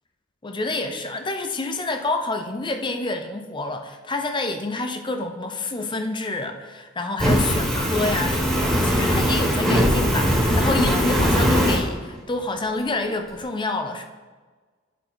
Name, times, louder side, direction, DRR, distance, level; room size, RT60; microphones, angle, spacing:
voice 1, 0.4-14.1, left 2 dB, 25° left, 6 dB, 0.6 m, -28 dB
Fire, 7.2-11.8, equal, 5° left, 1.8 m, -20 dB
11.0 x 4.1 x 3.9 m, 1.4 s
head